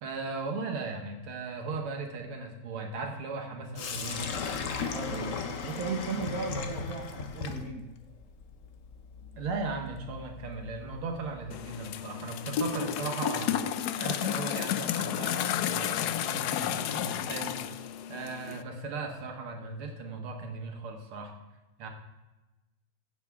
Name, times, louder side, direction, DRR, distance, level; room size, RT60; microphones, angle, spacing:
voice 1, 0.0-4.2 9.4-13.6 14.0-17.7 18.1-21.3 21.8-21.9, right 3 dB, 90° right, 3 dB, 2.3 m, -37 dB
Sink (filling or washing), 3.8-11.7, left 5 dB, 55° left, 0.9 m, -38 dB
voice 2, 4.9-7.9, right 4 dB, 50° right, 0 dB, 1.3 m, -36 dB
sound 1, 11.5-18.6, left 10 dB, 90° left, 0.8 m, -32 dB
16.0 x 7.3 x 3.6 m, 1.1 s
omnidirectional pair, 2.3 m